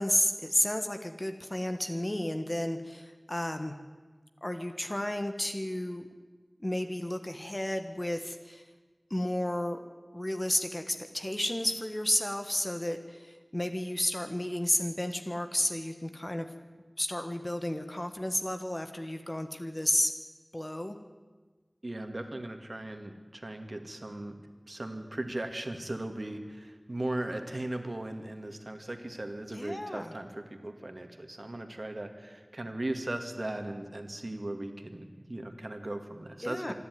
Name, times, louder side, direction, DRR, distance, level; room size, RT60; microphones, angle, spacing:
voice 1, 0.0-3.7 4.4-6.1 6.6-8.7 9.1-9.8 10.1-16.5 17.0-20.1 20.5-21.0 29.5-30.1 36.4-36.7, left 1 dB, 30° left, 7 dB, 1.4 m, -32 dB
voice 2, 21.8-24.4 24.7-36.7, right 1 dB, 55° right, 6 dB, 2.3 m, -38 dB
26.5 x 11.0 x 9.6 m, 1.4 s
wide cardioid pair, 45°, 0 cm